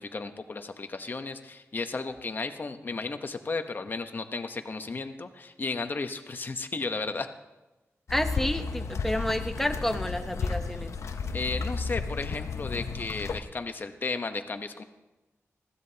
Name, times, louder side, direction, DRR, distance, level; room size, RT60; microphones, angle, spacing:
voice 1, 0.0-7.3 11.3-14.8, left 3 dB, 40° left, 8 dB, 1.0 m, -34 dB
sound 1, 8.1-13.4, left 4 dB, 70° left, 0.8 m, -33 dB
voice 2, 8.1-10.9, left 1 dB, 5° left, 7 dB, 0.9 m, -30 dB
20.5 x 15.5 x 2.8 m, 1.1 s
wide cardioid pair, 130°, 5 cm